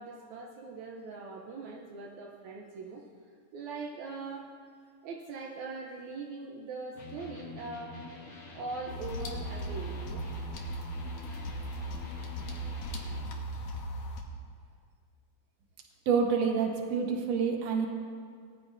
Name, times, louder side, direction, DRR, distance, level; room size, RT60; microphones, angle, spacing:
voice 1, 0.0-3.1 3.5-4.5 5.0-8.0 8.5-10.3, right 3 dB, 75° right, 0 dB, 1.7 m, -41 dB
Electric guitar, 6.9-13.4, left 3 dB, 30° left, 1.8 m, -46 dB
sound 1, 8.9-14.2, right 1 dB, 60° left, 2.0 m, -37 dB
voice 2, 16.1-17.9, right 6 dB, 60° right, 2 dB, 1.8 m, -27 dB
20.5 x 14.0 x 2.7 m, 2.1 s
omnidirectional pair, 4.5 m